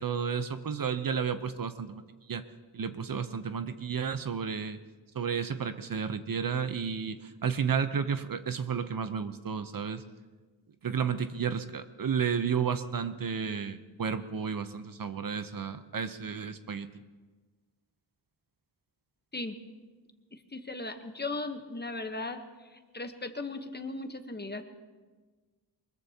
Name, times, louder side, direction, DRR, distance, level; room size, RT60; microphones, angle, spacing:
voice 1, 0.0-2.0 2.3-2.4 2.7-4.8 5.1-10.0 10.8-16.9, right 6 dB, 50° right, 10 dB, 0.7 m, -32 dB
voice 2, 20.5-22.4 22.9-24.6, left 2 dB, 25° left, 6 dB, 1.0 m, -37 dB
23.5 x 21.5 x 2.8 m, 1.4 s
wide cardioid pair, 140°, 44 cm